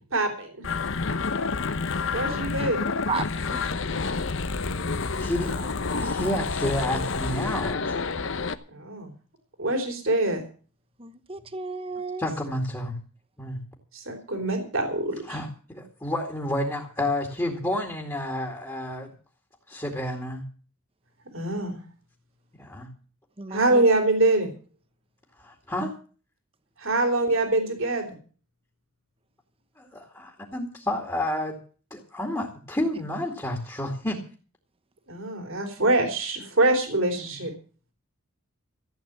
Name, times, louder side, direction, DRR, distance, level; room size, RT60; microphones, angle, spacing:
voice 1, 0.1-0.5 2.1-2.8 8.7-9.1 9.6-10.4 13.9-15.4 21.3-21.8 23.5-24.5 26.8-28.1 35.1-37.5, right 2 dB, 60° right, 4 dB, 3.5 m, -24 dB
sound 1, 0.6-8.5, left 4 dB, 60° left, 0.9 m, -29 dB
voice 2, 2.2-2.7 3.1-3.2 10.1-10.2 11.0-12.2 23.4-23.8, right 4 dB, 25° right, 11 dB, 1.0 m, -33 dB
voice 3, 5.2-8.0 12.2-13.0 13.4-13.6 15.3-19.1 19.7-20.4 22.6-22.9 25.4-25.9 29.8-31.6 31.9-34.2 37.2-37.4, left 1 dB, 15° left, 0 dB, 2.2 m, -30 dB
15.0 x 8.6 x 7.5 m, 0.40 s
head